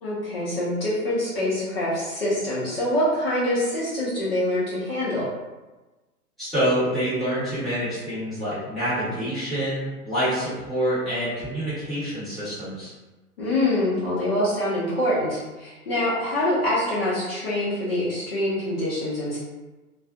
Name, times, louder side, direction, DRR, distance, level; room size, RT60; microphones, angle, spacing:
voice 1, 0.0-5.3 13.4-19.4, left 1 dB, 40° left, -9 dB, 0.8 m, -25 dB
voice 2, 6.4-12.9, equal, ahead, -16 dB, 1.1 m, -26 dB
2.5 x 2.4 x 2.3 m, 1.1 s
figure-of-eight pair, 115°, 45 cm